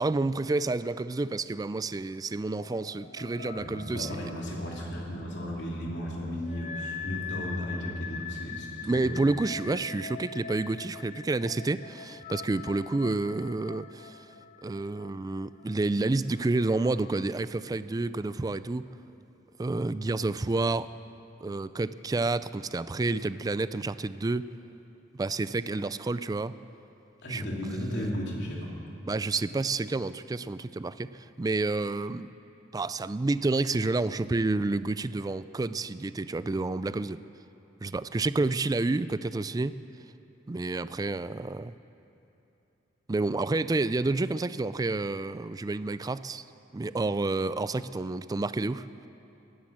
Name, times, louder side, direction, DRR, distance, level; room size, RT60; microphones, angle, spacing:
voice 1, 0.0-4.6 8.8-14.2 14.6-18.9 19.6-20.9 21.4-24.5 25.2-26.5 27.3-27.5 29.1-31.1 31.4-32.3 32.7-37.2 37.8-39.8 40.5-41.7 43.1-46.4 46.7-48.9, right 3 dB, 20° right, 15 dB, 0.3 m, -29 dB
sound 1, 2.6-17.3, left 6 dB, 40° left, 0.5 m, -43 dB
voice 2, 3.5-9.3 27.2-28.7, equal, 65° left, -2 dB, 3.2 m, -35 dB
18.0 x 10.5 x 7.5 m, 2.9 s
head